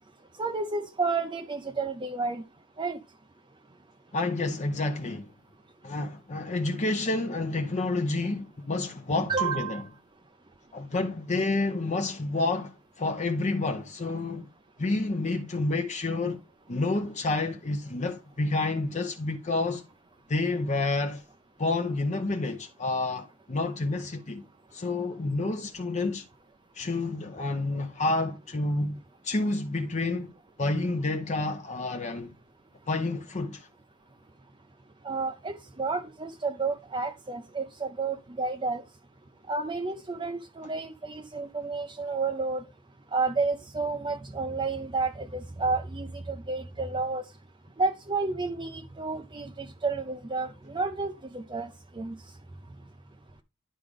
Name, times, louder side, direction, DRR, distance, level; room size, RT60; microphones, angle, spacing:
voice 1, 0.4-2.4 2.8-3.0 9.3-9.9 35.0-38.8 39.5-42.6 43.1-47.2 47.8-52.2, right 4 dB, 20° right, 0.5 m, -31 dB
voice 2, 4.1-5.3 5.8-9.8 10.7-14.5 14.8-16.4 16.7-19.8 20.3-21.2 21.6-24.5 24.7-26.3 26.7-29.0 29.2-30.3 30.6-32.3 32.9-33.7, left 2 dB, 35° left, 0.7 m, -29 dB
11.0 x 4.8 x 3.6 m
head